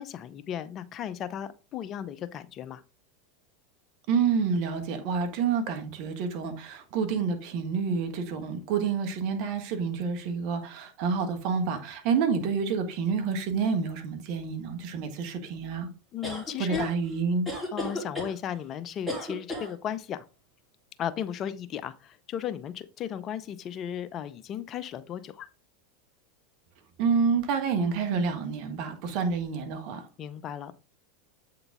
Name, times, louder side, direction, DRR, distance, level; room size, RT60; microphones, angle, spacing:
voice 1, 0.0-2.8 16.1-16.9 17.7-20.2 21.0-25.5 30.2-30.7, left 9 dB, 40° left, 0.5 m, -35 dB
voice 2, 4.1-15.9 16.6-17.5 27.0-30.1, right 5 dB, 55° right, 1.5 m, -28 dB
sound 1, 16.2-16.9 17.5-18.3 19.1-19.7, left 1 dB, ahead, 2.9 m, -33 dB
7.9 x 3.9 x 3.6 m
hypercardioid pair, 95°, 0 cm